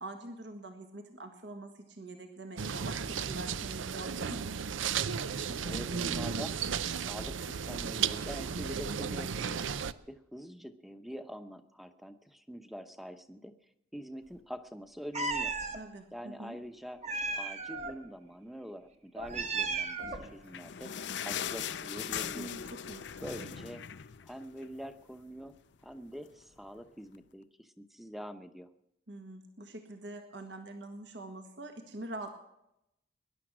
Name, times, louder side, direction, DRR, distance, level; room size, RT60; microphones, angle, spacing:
voice 1, 0.0-4.5 15.8-16.6 22.3-23.1 23.4-23.5 29.1-32.3, right 2 dB, 65° right, 5 dB, 1.6 m, -44 dB
sound 1, 2.6-9.9, right 7 dB, 90° right, 0.6 m, -34 dB
voice 2, 5.4-6.5 6.9-9.6 10.1-13.5 13.9-15.5 16.1-17.0 17.4-20.9 21.2-22.5 23.2-23.8 24.2-25.5 25.8-28.7, equal, ahead, 9 dB, 0.9 m, -45 dB
Meow, 15.1-15.8 17.0-17.9 19.2-20.3, right 4 dB, 35° right, 1.3 m, -34 dB
sound 2, 20.1-24.8 25.2-25.3 25.6-25.7 26.4-26.5, left 8 dB, 65° left, 0.5 m, -39 dB
20.5 x 11.0 x 6.2 m, 0.84 s
head